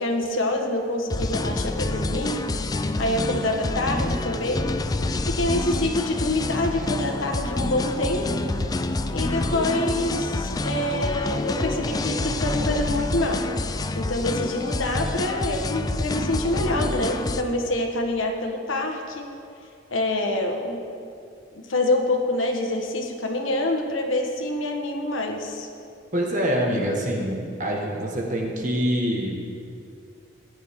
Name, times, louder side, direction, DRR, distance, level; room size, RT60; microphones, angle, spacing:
voice 1, 0.0-2.4 3.0-4.7 5.2-8.3 9.1-13.4 13.9-19.3 19.9-20.8 21.5-25.7, left 1 dB, 85° left, 3 dB, 1.3 m, -26 dB
sound 1, 1.1-17.4, left 2 dB, 20° left, 0.4 m, -27 dB
voice 2, 26.1-29.4, equal, 40° right, 0 dB, 1.5 m, -25 dB
15.5 x 9.6 x 3.7 m, 2.4 s
head